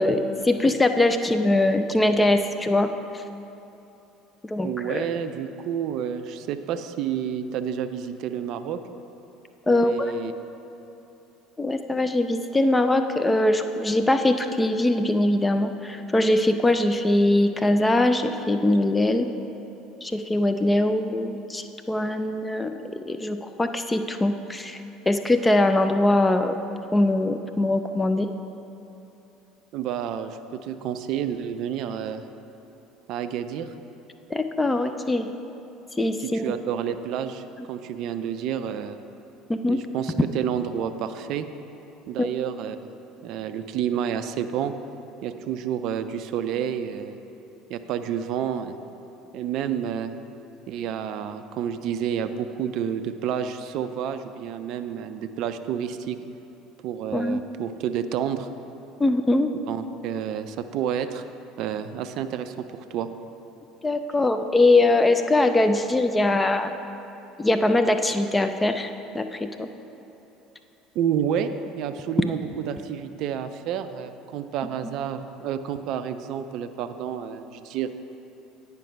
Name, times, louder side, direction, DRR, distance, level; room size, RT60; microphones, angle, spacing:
voice 1, 0.0-3.2 4.4-5.0 9.7-10.1 11.6-19.3 20.0-24.8 25.1-26.6 26.9-28.3 34.3-35.3 36.0-36.5 39.5-39.8 42.2-42.3 57.1-57.4 59.0-59.5 63.8-66.7 67.4-69.7, left 2 dB, 15° left, 8 dB, 0.4 m, -22 dB
voice 2, 4.6-8.8 9.7-10.3 29.7-32.2 33.1-33.7 36.2-39.0 39.7-41.5 42.1-42.8 43.2-44.7 45.2-47.2 47.7-48.8 49.3-50.1 50.7-56.2 56.8-58.5 59.7-61.2 61.6-63.1 70.9-77.9, right 9 dB, 55° right, 10 dB, 0.4 m, -29 dB
9.2 x 5.2 x 4.6 m, 2.9 s
figure-of-eight pair, 65°, 0 cm